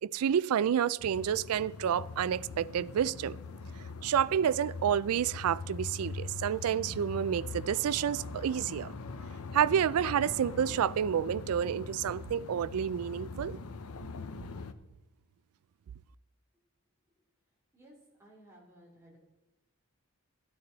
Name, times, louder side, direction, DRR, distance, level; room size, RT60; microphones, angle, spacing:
voice 1, 0.0-3.4 4.0-8.9 9.5-13.6, right 8 dB, 85° right, 0.3 m, -29 dB
sound 1, 1.0-14.7, left 4 dB, 80° left, 0.7 m, -42 dB
voice 2, 17.7-19.2, right 1 dB, 10° right, 2.9 m, -57 dB
13.5 x 9.6 x 4.0 m
head